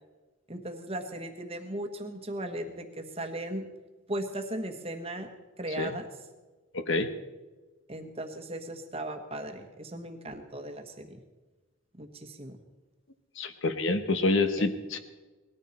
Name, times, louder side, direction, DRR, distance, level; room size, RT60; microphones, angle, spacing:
voice 1, 0.5-3.6 4.1-5.3 5.6-6.1 7.9-11.2 11.9-12.6 14.6-14.7, right 1 dB, 25° right, 6 dB, 1.3 m, -37 dB
voice 2, 6.7-7.1 13.4-15.0, left 3 dB, 60° left, 9 dB, 1.1 m, -27 dB
19.5 x 13.5 x 4.4 m, 1.2 s
head